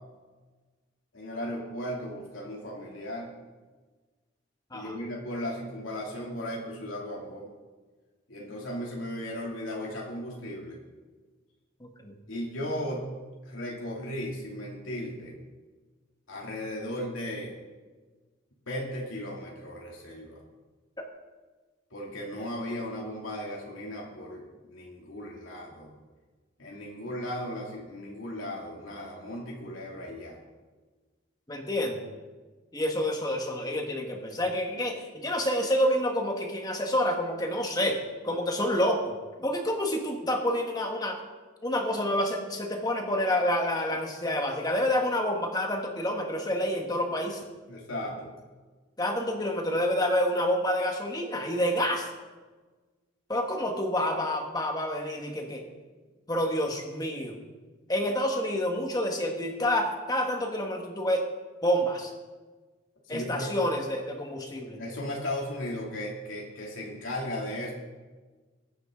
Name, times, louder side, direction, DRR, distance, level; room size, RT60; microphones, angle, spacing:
voice 1, 1.1-3.3 4.7-7.5 8.3-10.8 12.3-13.1 13.4-15.3 16.3-17.5 18.7-20.4 21.9-25.9 26.6-30.4 47.7-48.4 63.1-63.5 64.8-67.7, left 1 dB, 85° left, -3 dB, 2.7 m, -36 dB
voice 2, 11.8-12.1 21.0-21.1 31.5-32.0 32.7-38.0 38.2-41.2 41.6-47.5 49.0-52.1 53.3-55.6 56.3-57.4 57.9-61.2 61.6-62.1 63.1-64.8, left 1 dB, 20° left, 3 dB, 1.6 m, -28 dB
20.5 x 9.6 x 3.8 m, 1.3 s
head